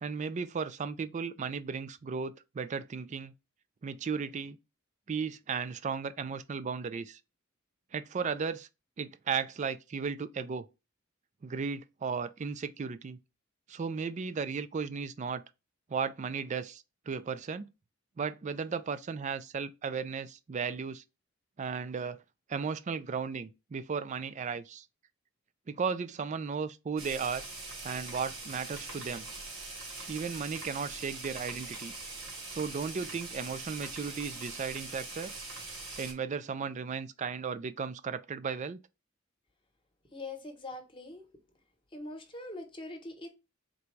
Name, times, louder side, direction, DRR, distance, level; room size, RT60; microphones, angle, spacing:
voice 1, 0.0-3.3 3.8-4.6 5.1-7.2 7.9-8.7 9.0-10.7 11.4-13.2 13.7-15.4 15.9-17.7 18.2-21.0 21.6-22.2 22.5-24.8 25.7-27.4 27.8-29.3 30.1-31.9 32.5-35.3 36.0-38.8, right 5 dB, 35° right, 0.3 m, -35 dB
sound 1, 27.0-36.1, right 3 dB, 70° right, 1.3 m, -42 dB
voice 2, 40.1-41.3 41.9-43.3, left 2 dB, 25° left, 0.9 m, -42 dB
3.9 x 2.3 x 4.5 m
head